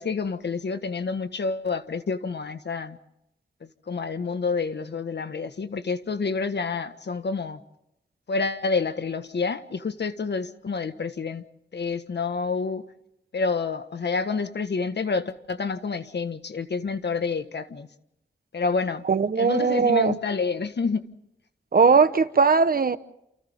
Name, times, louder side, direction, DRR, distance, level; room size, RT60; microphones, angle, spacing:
voice 1, 0.0-3.0 3.9-7.6 8.3-11.4 11.7-12.8 13.3-17.9 18.5-19.0 19.3-21.1, left 4 dB, 70° left, 1.5 m, -28 dB
voice 2, 19.1-20.2 21.7-23.0, right 5 dB, 55° right, 1.1 m, -19 dB
29.0 x 28.5 x 3.7 m
wide cardioid pair, 100°, 19 cm